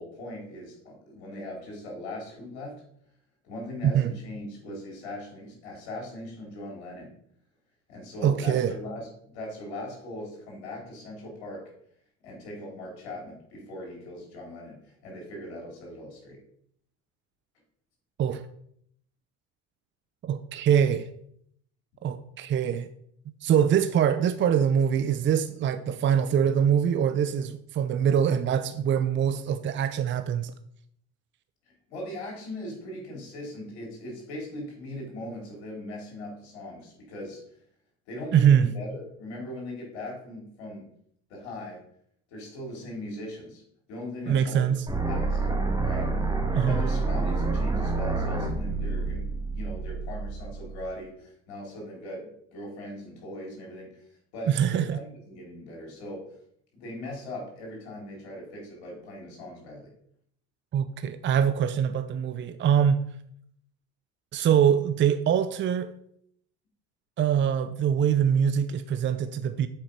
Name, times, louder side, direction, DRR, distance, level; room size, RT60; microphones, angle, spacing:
voice 1, 0.0-2.8 3.4-7.2 7.9-11.7 12.2-16.4 31.9-37.4 38.1-40.9 41.3-41.8 42.3-43.6 43.9-44.6 45.1-45.4 45.8-46.2 46.7-54.1 54.3-56.4 56.7-59.9, left 1 dB, 90° left, 3.7 m, -39 dB
voice 2, 8.2-8.7 18.2-18.4 20.2-21.1 22.0-22.9 23.4-30.5 38.3-38.7 44.3-44.8 46.5-46.8 54.5-55.0 60.7-63.0 64.3-65.9 67.2-69.7, right 8 dB, 35° right, 0.6 m, -23 dB
sound 1, 44.9-50.8, right 3 dB, 10° right, 1.6 m, -28 dB
7.4 x 4.9 x 5.2 m
supercardioid pair, 90°, 33 cm